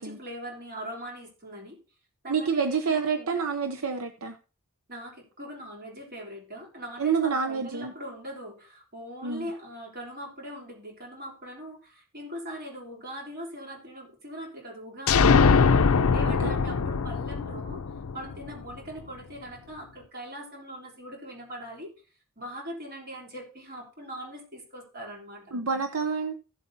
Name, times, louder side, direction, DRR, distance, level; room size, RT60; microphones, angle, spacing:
voice 1, 0.0-1.8 2.2-3.3 4.9-17.8 18.1-21.9 22.4-25.6, equal, 45° right, -1 dB, 3.5 m, -41 dB
voice 2, 2.3-4.4 7.0-7.9 9.2-9.5 16.4-16.5 25.5-26.4, right 5 dB, 70° right, 7 dB, 0.7 m, -28 dB
sound 1, 15.1-18.8, left 5 dB, 70° left, 0.5 m, -22 dB
16.0 x 7.4 x 2.8 m, 0.36 s
head